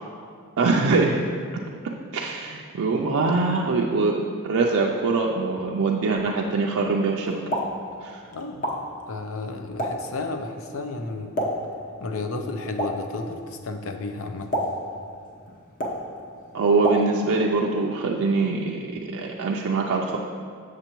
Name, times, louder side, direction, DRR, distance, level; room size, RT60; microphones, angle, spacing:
voice 1, 0.6-1.3 2.1-7.4 8.0-8.2 16.5-20.2, right 3 dB, 65° right, -1 dB, 0.4 m, -23 dB
Explosion, 7.3-17.5, equal, 40° left, 1.0 m, -33 dB
voice 2, 8.3-8.7 9.1-11.3 12.0-14.5, left 3 dB, 70° left, 6 dB, 0.6 m, -32 dB
7.4 x 6.6 x 3.0 m, 2.2 s
head